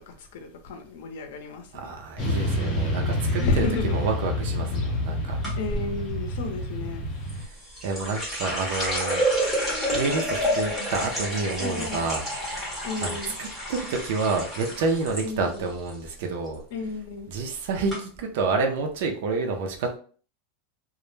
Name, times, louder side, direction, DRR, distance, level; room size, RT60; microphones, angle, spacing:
voice 1, 0.1-2.0 3.4-4.0 5.6-7.1 11.6-12.1 12.8-13.3 15.2-15.7 16.7-17.3, left 3 dB, 70° left, 0.6 m, -32 dB
voice 2, 1.7-5.4 7.3-7.6 7.8-9.2 9.9-12.7 13.0-16.6 17.3-20.0, right 3 dB, 60° right, 0.5 m, -29 dB
Motorcycle / Traffic noise roadway noise, 2.2-7.4, left 1 dB, 30° left, 0.7 m, -28 dB
sound 1, 5.4-5.8 7.3-15.2 15.5-16.1 16.5-16.8 17.5-17.6 17.9-18.0, equal, ahead, 0.9 m, -29 dB
2.2 x 2.0 x 3.0 m
supercardioid pair, 170°, 0 cm